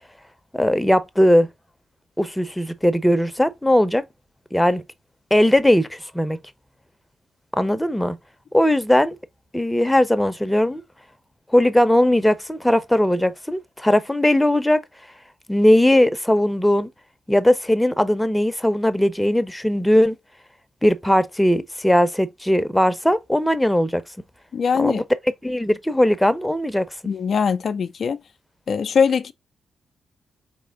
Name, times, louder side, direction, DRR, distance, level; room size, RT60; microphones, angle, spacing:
voice 1, 0.5-1.5 2.2-4.0 4.5-4.8 5.3-6.4 7.6-8.2 8.5-9.2 9.5-10.8 11.5-14.8 15.5-16.9 17.3-20.2 20.8-24.0 24.8-25.0 25.4-26.9, left 1 dB, 5° left, 0.7 m, -19 dB
voice 2, 24.5-25.0 27.0-28.2 28.7-29.3, left 6 dB, 60° left, 0.3 m, -21 dB
4.2 x 3.3 x 3.6 m
supercardioid pair, 50°, 0 cm